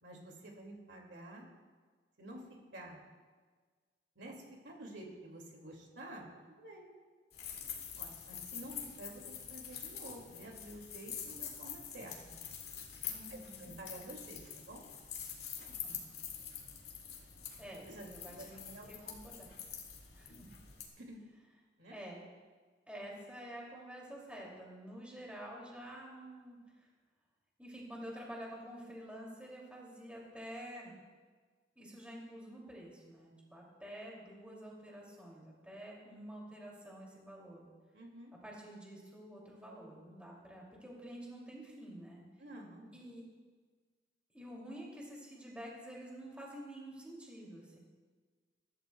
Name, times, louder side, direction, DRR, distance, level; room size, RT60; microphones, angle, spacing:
voice 1, 0.0-1.5 2.2-2.4 2.7-3.0 4.2-6.3 6.6-6.9 8.0-12.4 13.3-14.9 15.6-15.8 17.8-18.1 18.3-18.9 21.0-21.2 21.8-22.0 37.9-38.3 42.4-43.0, right 1 dB, 90° right, 0 dB, 2.4 m, -50 dB
sound 1, 7.3-20.9, left 8 dB, 60° left, 2.2 m, -46 dB
voice 2, 13.0-13.8 15.8-16.1 17.6-19.5 20.1-20.5 21.9-22.3 22.9-26.6 27.6-30.9 31.8-37.6 38.4-42.2 42.9-43.2 44.3-47.8, equal, 5° right, -3 dB, 2.7 m, -49 dB
22.0 x 12.5 x 2.3 m, 1.5 s
head